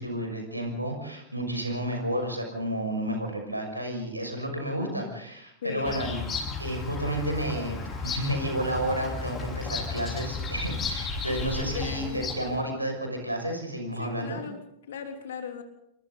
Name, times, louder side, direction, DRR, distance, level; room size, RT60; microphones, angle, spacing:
voice 1, 0.0-6.2 6.6-14.4, right 1 dB, 85° right, 3 dB, 6.3 m, -31 dB
voice 2, 5.6-6.0 11.7-12.2 14.0-15.6, left 7 dB, 60° left, 5 dB, 3.3 m, -37 dB
Bird vocalization bird call bird song, 5.8-12.6, left 4 dB, 25° left, 5.7 m, -34 dB
28.0 x 24.0 x 4.1 m, 0.79 s
figure-of-eight pair, 90°, 0 cm